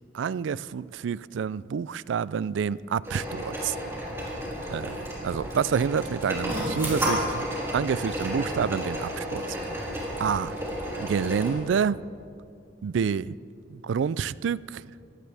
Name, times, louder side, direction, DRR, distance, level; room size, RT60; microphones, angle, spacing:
voice 1, 0.1-3.8 4.7-7.5 7.7-9.4 10.2-10.5 11.0-12.0 12.8-13.4 13.7-14.9, right 7 dB, 85° right, 0.3 m, -28 dB
sound 1, 3.0-11.5, equal, 15° right, 3.8 m, -32 dB
21.5 x 16.5 x 3.4 m
head